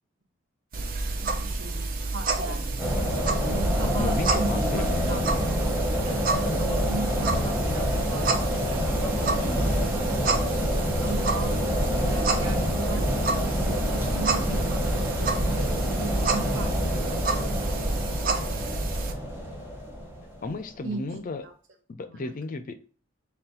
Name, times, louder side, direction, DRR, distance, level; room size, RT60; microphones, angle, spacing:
sound 1, 0.7-19.1, right 3 dB, 45° right, 0.5 m, -30 dB
voice 1, 0.8-2.7 3.5-5.3 6.0-9.7 10.6-14.9 15.5-19.3 20.8-21.5 22.1-22.3, right 3 dB, 70° right, 0.9 m, -38 dB
sound 2, 2.8-20.7, equal, 10° right, 0.8 m, -27 dB
voice 2, 4.0-5.4 20.4-21.4 21.9-23.0, left 3 dB, 45° left, 0.4 m, -34 dB
4.0 x 2.2 x 3.9 m
head